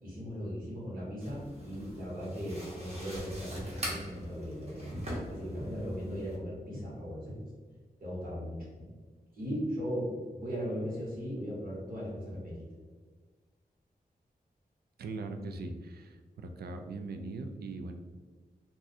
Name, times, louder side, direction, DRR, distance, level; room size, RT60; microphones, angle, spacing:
voice 1, 0.0-4.9 5.3-7.4 8.0-8.9 9.3-12.6, equal, 65° right, -6 dB, 1.4 m, -38 dB
sound 1, 1.2-6.4, equal, 45° right, 1.2 m, -41 dB
voice 2, 15.0-17.9, right 3 dB, 90° right, 6 dB, 0.4 m, -40 dB
2.5 x 2.4 x 4.1 m, 1.5 s
wide cardioid pair, 140°, 16 cm